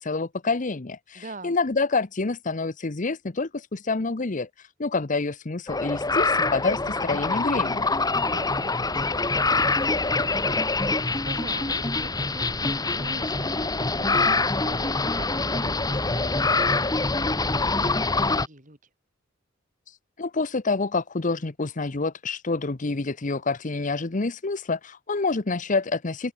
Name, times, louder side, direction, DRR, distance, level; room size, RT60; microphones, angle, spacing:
voice 1, 0.0-7.9 19.9-26.3, left 3 dB, 40° left, 0.9 m, -27 dB
voice 2, 1.1-1.6 8.2-18.8, right 2 dB, 40° right, 6.8 m, -44 dB
sound 1, 5.7-18.5, left 3 dB, 20° left, 1.6 m, -25 dB
head